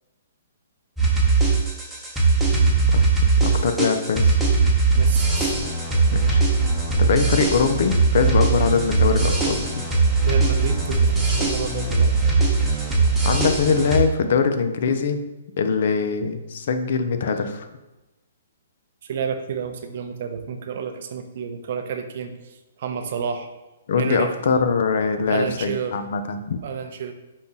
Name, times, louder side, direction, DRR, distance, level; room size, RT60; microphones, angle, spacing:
sound 1, 1.0-14.0, right 3 dB, 5° right, 0.8 m, -20 dB
voice 1, 2.7-3.0 3.4-4.4 6.1-6.4 7.0-9.8 13.2-15.2 15.6-17.7 23.9-26.6, left 5 dB, 60° left, 8 dB, 0.5 m, -22 dB
voice 2, 5.0-5.3 10.2-12.1 19.0-23.5 24.0-24.3 25.3-26.0 26.6-27.1, right 7 dB, 55° right, 6 dB, 0.5 m, -30 dB
5.4 x 2.3 x 4.0 m, 1.0 s
hypercardioid pair, 145°, 0 cm